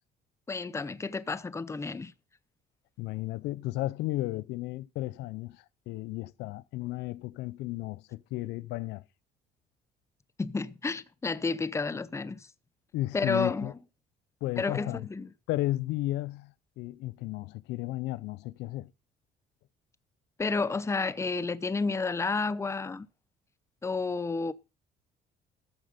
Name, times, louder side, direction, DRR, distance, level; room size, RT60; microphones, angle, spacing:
voice 1, 0.5-2.1 10.4-12.5 13.1-13.7 14.6-15.3 20.4-23.1 23.8-24.5, left 4 dB, 15° left, 0.7 m, -31 dB
voice 2, 3.0-9.0 12.9-13.7 14.4-15.0 15.5-18.9, left 17 dB, 85° left, 0.6 m, -34 dB
14.0 x 7.6 x 5.1 m
cardioid pair, 110°, 17 cm